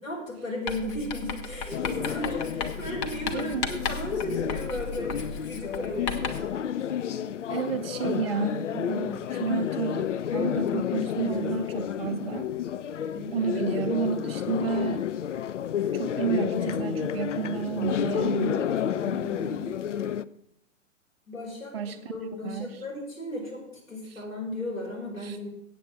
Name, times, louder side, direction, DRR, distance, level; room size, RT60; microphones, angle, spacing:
voice 1, 0.0-6.3 13.1-13.5 18.9-19.7 21.3-21.8 22.1-23.6 23.9-25.5, left 1 dB, 85° left, -4 dB, 4.8 m, -35 dB
Writing, 0.7-6.6, left 4 dB, 20° left, 0.7 m, -35 dB
sound 1, 1.7-20.2, left 9 dB, 70° left, 0.5 m, -30 dB
voice 2, 3.3-3.7 7.5-12.5 13.3-15.0 15.9-18.7 21.7-22.0 22.4-22.8 24.1-24.2 25.2-25.4, right 7 dB, 50° right, 4 dB, 0.7 m, -31 dB
8.4 x 7.5 x 7.5 m, 0.75 s
figure-of-eight pair, 115°, 39 cm